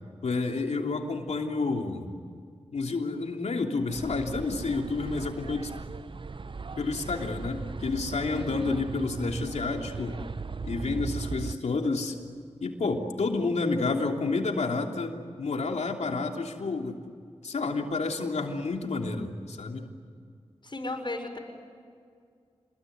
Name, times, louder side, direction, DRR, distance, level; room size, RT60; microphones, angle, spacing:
voice 1, 0.2-2.1 2.7-5.7 6.8-10.2 10.6-12.2 12.6-17.1 17.4-19.9, left 3 dB, 80° left, 2 dB, 3.1 m, -30 dB
sound 1, 3.9-11.5, right 4 dB, 45° right, 0.7 m, -38 dB
voice 2, 8.3-8.7 20.6-21.4, left 2 dB, 45° left, 4 dB, 5.8 m, -35 dB
27.5 x 21.5 x 9.4 m, 2.1 s
cardioid pair, 45°, 11 cm